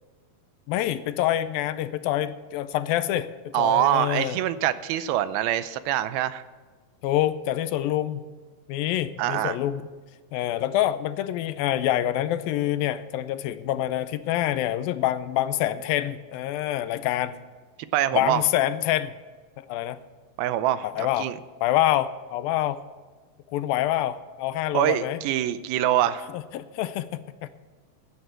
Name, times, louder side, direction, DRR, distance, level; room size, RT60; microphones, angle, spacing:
voice 1, 0.7-4.4 7.0-8.3 8.7-9.8 10.3-17.4 18.1-19.1 19.6-20.0 20.8-21.3 21.6-22.8 23.5-25.2 26.3-27.5, left 13 dB, 80° left, 13 dB, 2.3 m, -26 dB
voice 2, 3.5-6.4 9.2-9.6 17.9-18.4 20.4-21.4 24.7-26.3, right 12 dB, 85° right, 14 dB, 2.5 m, -24 dB
16.0 x 11.0 x 4.5 m, 1.4 s
omnidirectional pair, 4.3 m